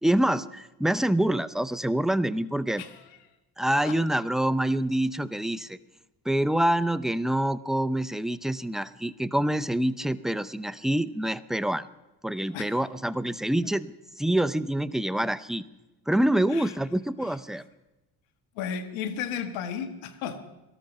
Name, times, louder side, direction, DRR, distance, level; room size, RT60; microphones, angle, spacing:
voice 1, 0.0-2.8 3.6-5.8 6.3-11.9 12.2-13.9 14.2-15.6 16.1-17.6, right 1 dB, ahead, 16 dB, 0.5 m, -26 dB
voice 2, 2.8-3.1 3.8-4.0 12.5-12.8 13.6-13.7 16.5-16.7 17.2-17.3 18.5-20.4, left 8 dB, 75° left, 8 dB, 1.7 m, -34 dB
18.5 x 13.0 x 5.4 m, 1.0 s
hypercardioid pair, 65°, 48 cm